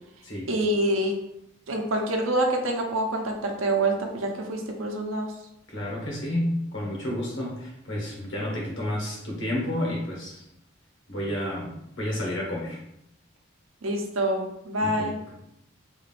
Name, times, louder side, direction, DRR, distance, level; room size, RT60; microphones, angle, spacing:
voice 1, 0.5-1.1 1.7-5.3 13.8-15.2, right 1 dB, 80° right, 2 dB, 0.7 m, -26 dB
voice 2, 5.7-10.5 11.1-12.8 14.8-15.3, left 1 dB, 65° left, -3 dB, 1.2 m, -31 dB
3.5 x 2.5 x 3.4 m, 0.78 s
head